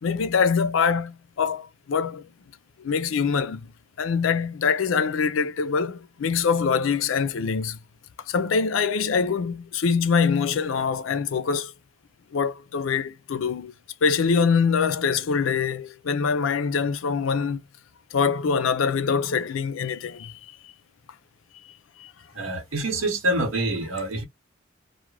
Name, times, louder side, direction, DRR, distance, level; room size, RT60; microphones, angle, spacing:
voice 1, 0.0-2.3 2.8-3.7 4.0-7.8 8.3-11.7 12.3-13.7 14.0-17.6 18.1-20.7 21.6-22.1, left 5 dB, 75° left, 0.4 m, -24 dB
voice 2, 22.3-24.2, right 1 dB, 90° right, 1.0 m, -26 dB
2.4 x 2.1 x 3.1 m
head